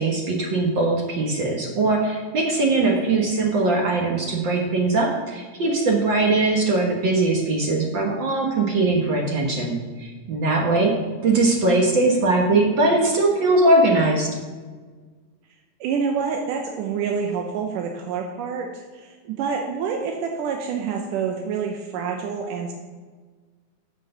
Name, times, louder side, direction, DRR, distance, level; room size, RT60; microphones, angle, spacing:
voice 1, 0.0-11.0 11.2-14.3, right 2 dB, 60° right, 1 dB, 1.2 m, -21 dB
voice 2, 15.8-22.7, right 6 dB, 85° right, 2 dB, 2.4 m, -27 dB
7.3 x 6.6 x 6.6 m, 1.4 s
omnidirectional pair, 3.7 m